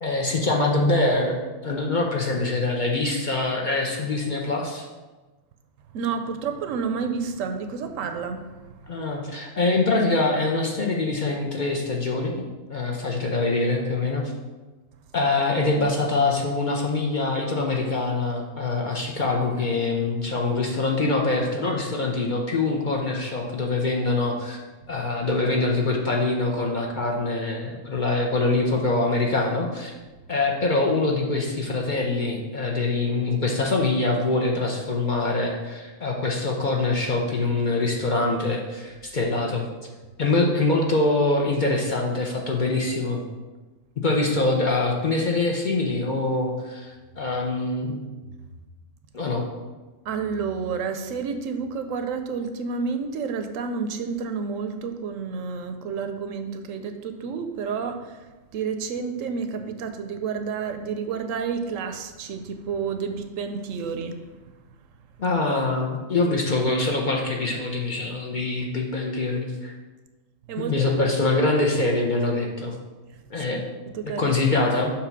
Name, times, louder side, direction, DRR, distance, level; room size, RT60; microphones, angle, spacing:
voice 1, 0.0-1.4 1.6-4.9 8.9-12.3 12.7-14.2 15.1-24.6 24.9-29.9 30.3-39.6 40.2-43.2 44.0-48.1 49.1-49.5 65.2-69.7 70.6-72.7 73.3-73.7 74.0-74.9, left 3 dB, 45° left, 0 dB, 0.7 m, -24 dB
voice 2, 5.9-9.0 50.0-64.2 70.5-70.9 73.1-73.2 73.9-74.2, right 5 dB, 80° right, 7 dB, 1.0 m, -30 dB
6.8 x 3.0 x 5.9 m, 1.2 s
omnidirectional pair, 1.4 m